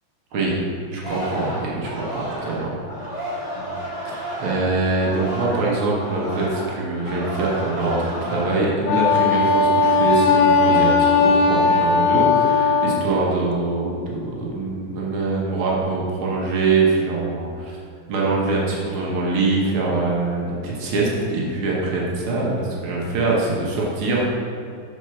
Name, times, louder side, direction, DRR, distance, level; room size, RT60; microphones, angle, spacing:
voice 1, 0.9-2.7 3.5-3.7 4.1-17.8 18.1-24.4, right 3 dB, 80° right, -4 dB, 1.9 m, -23 dB
Singing, 1.0-5.7 6.0-8.8 9.2-9.5, equal, 20° left, 1.2 m, -32 dB
Wind instrument woodwind instrument, 8.8-13.1, left 4 dB, 85° left, 1.5 m, -17 dB
6.3 x 4.6 x 5.7 m, 2.5 s
omnidirectional pair, 2.3 m